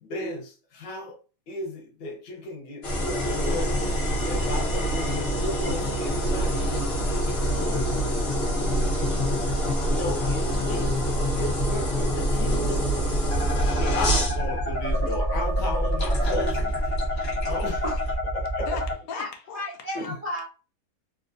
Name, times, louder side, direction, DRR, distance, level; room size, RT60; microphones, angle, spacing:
voice 1, 0.0-1.2 1.5-3.7 4.3-6.9 9.9-11.0 11.4-13.1 13.7-16.8 17.1-17.8 18.3-18.8 19.9-20.2, left 2 dB, 85° left, 1.4 m, -34 dB
sound 1, 2.8-18.2, equal, 45° left, 1.1 m, -26 dB
voice 2, 7.4-8.9 18.7-19.6 20.0-20.1, left 5 dB, 65° left, 1.1 m, -39 dB
sound 2, 13.3-18.9, equal, 10° left, 0.8 m, -28 dB
voice 3, 19.1-20.4, equal, 85° right, 0.3 m, -33 dB
3.7 x 2.4 x 2.5 m
omnidirectional pair, 1.8 m